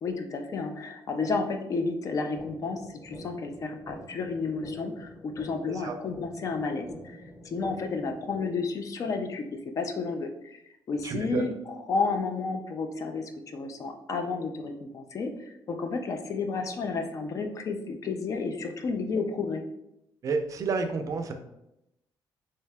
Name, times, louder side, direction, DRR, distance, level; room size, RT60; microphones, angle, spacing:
voice 1, 0.0-7.2 7.4-9.5 9.8-10.6 10.9-19.6, left 4 dB, 40° left, 5 dB, 0.4 m, -31 dB
sound 1, 2.4-8.4, equal, 5° left, 0.8 m, -47 dB
voice 2, 11.0-11.4 20.2-21.3, right 4 dB, 45° right, 6 dB, 0.4 m, -30 dB
3.3 x 2.7 x 3.3 m, 0.84 s
cardioid pair, 150°, 8 cm